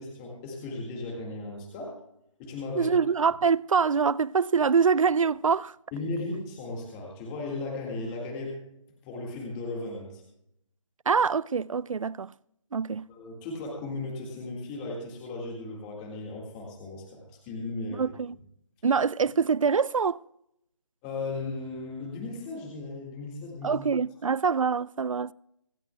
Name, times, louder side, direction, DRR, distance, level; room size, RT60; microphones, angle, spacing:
voice 1, 0.0-1.9 2.4-3.0 5.9-8.6 9.0-10.2 13.1-18.0 21.0-23.8, left 2 dB, 15° left, 1.8 m, -36 dB
voice 2, 2.8-5.8 11.1-12.3 12.7-13.1 18.0-18.3 18.8-20.2 23.6-25.3, right 5 dB, 90° right, 0.4 m, -25 dB
24.5 x 9.1 x 2.2 m
figure-of-eight pair, 160°, 16 cm